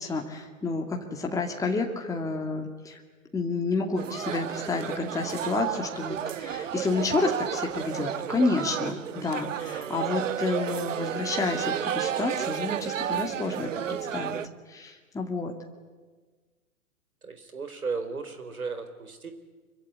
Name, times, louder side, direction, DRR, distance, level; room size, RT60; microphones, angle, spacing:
voice 1, 0.0-3.0 3.3-14.4 14.7-15.5, left 3 dB, 5° left, 1 dB, 2.4 m, -30 dB
sound 1, 4.0-14.5, right 9 dB, 60° right, 1.2 m, -32 dB
voice 2, 17.2-19.3, right 4 dB, 75° right, 9 dB, 4.2 m, -35 dB
25.5 x 24.0 x 9.8 m, 1.4 s
figure-of-eight pair, 110°, 43 cm